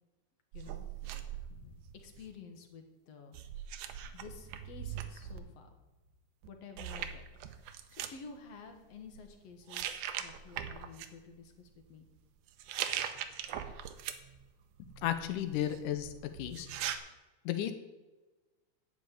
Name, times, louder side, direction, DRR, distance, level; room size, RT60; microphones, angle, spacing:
voice 1, 0.5-3.4 4.1-5.7 6.5-7.3 7.6-12.1 12.9-13.1, left 5 dB, 60° left, 5 dB, 2.1 m, -52 dB
sound 1, 0.5-2.4 3.3-5.4 6.4-6.5 6.8-8.1 8.9-9.2 9.7-11.1 12.5-14.4 14.8-17.0, right 10 dB, 90° right, 2.3 m, -41 dB
voice 2, 14.8-16.1 16.4-16.7 17.5-17.7, left 11 dB, 90° left, 9 dB, 2.3 m, -34 dB
9.9 x 6.2 x 8.8 m, 1.2 s
omnidirectional pair, 3.5 m